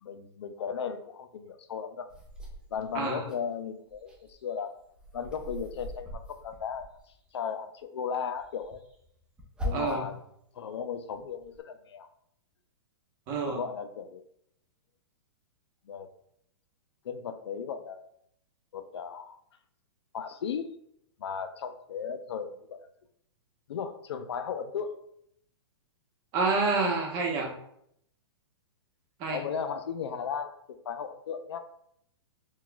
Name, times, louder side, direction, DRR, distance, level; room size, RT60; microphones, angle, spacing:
voice 1, 0.0-2.1 2.7-4.8 5.1-6.9 7.3-8.8 9.6-10.2 10.5-12.1 13.4-14.2 15.9-16.1 17.0-18.0 18.7-19.4 20.1-20.7 21.2-22.8 23.7-24.9 29.3-31.6, left 7 dB, 90° left, 9 dB, 0.4 m, -36 dB
sound 1, 2.1-3.4 3.8-7.3 8.4-10.2 10.7-11.6, left 1 dB, 5° right, 0.6 m, -41 dB
voice 2, 9.7-10.0 13.3-13.6 26.3-27.5 29.2-29.4, right 4 dB, 30° right, 0 dB, 0.9 m, -28 dB
5.9 x 2.3 x 2.3 m, 0.72 s
hypercardioid pair, 150°, 14 cm